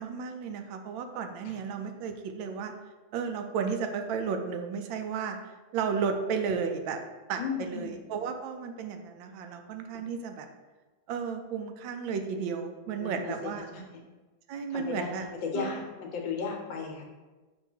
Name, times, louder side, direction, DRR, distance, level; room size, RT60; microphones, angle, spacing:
voice 1, 0.0-2.7 3.1-5.4 5.7-7.0 7.3-10.5 11.1-13.7 14.5-15.3 15.5-15.8, right 6 dB, 85° right, 6 dB, 1.4 m, -33 dB
voice 2, 7.4-7.9 13.0-13.3 13.7-14.0 14.7-17.0, left 5 dB, 75° left, 1 dB, 1.6 m, -35 dB
6.2 x 3.0 x 5.5 m, 1.2 s
omnidirectional pair, 2.1 m